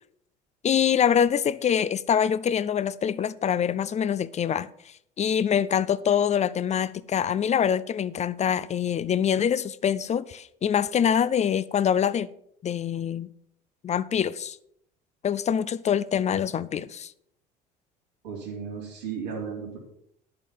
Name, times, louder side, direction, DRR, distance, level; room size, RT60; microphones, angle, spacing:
voice 1, 0.6-4.7 5.2-12.3 12.6-13.3 13.8-14.6 15.2-17.1, left 8 dB, 30° left, 0.6 m, -24 dB
voice 2, 18.2-19.8, right 6 dB, 85° right, 3.4 m, -35 dB
10.5 x 6.8 x 5.6 m
hypercardioid pair, 70°, 21 cm